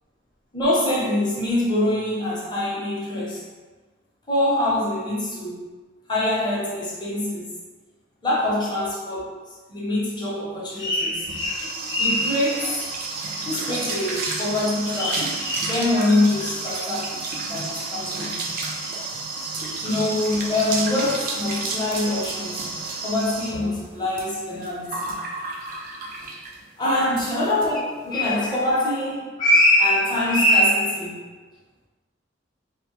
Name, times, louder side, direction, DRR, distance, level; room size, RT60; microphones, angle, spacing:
voice 1, 0.5-3.4 4.3-5.6 6.1-7.5 8.2-9.3 9.7-12.8 13.5-17.1 17.4-18.5 19.8-22.7 23.0-25.2 26.8-31.2, left 1 dB, 25° left, -7 dB, 0.6 m, -23 dB
sound 1, 10.9-26.6 27.0-27.3 27.6-27.7 28.0-28.4, right 3 dB, 50° right, 0.3 m, -31 dB
2.1 x 2.0 x 2.9 m, 1.4 s
head